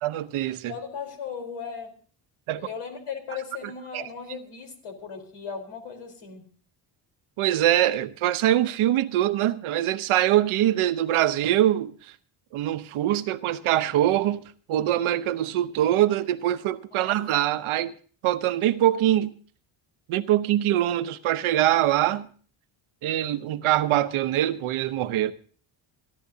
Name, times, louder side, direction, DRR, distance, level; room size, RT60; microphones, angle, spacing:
voice 1, 0.0-0.7 2.5-2.6 3.9-4.0 7.4-11.9 12.5-14.4 14.7-17.9 18.2-19.3 20.1-22.3 23.0-25.3, right 13 dB, 75° right, 1.0 m, -23 dB
voice 2, 0.7-1.9 2.5-6.5 16.9-17.1, left 6 dB, 75° left, 4.1 m, -37 dB
29.0 x 11.0 x 2.8 m
cardioid pair, 95°, 50 cm